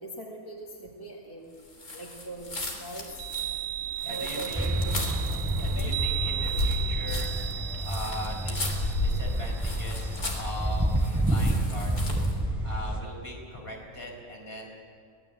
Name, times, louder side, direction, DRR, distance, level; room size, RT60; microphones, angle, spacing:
voice 1, 0.0-1.6 1.9-3.1 4.1-5.1 5.7-6.0, right 2 dB, 15° left, -1 dB, 1.9 m, -41 dB
sound 1, 1.7-12.4, left 1 dB, 80° left, 3.6 m, -34 dB
Chime, 3.1-11.2, right 12 dB, 55° right, 1.7 m, -36 dB
voice 2, 4.0-4.7 5.6-7.3 7.8-11.0 11.2-12.1 12.6-14.7, left 1 dB, 40° left, -1 dB, 5.4 m, -40 dB
sound 2, 4.5-13.0, right 1 dB, ahead, 3.5 m, -29 dB
23.5 x 18.0 x 7.9 m, 2.3 s
omnidirectional pair, 1.5 m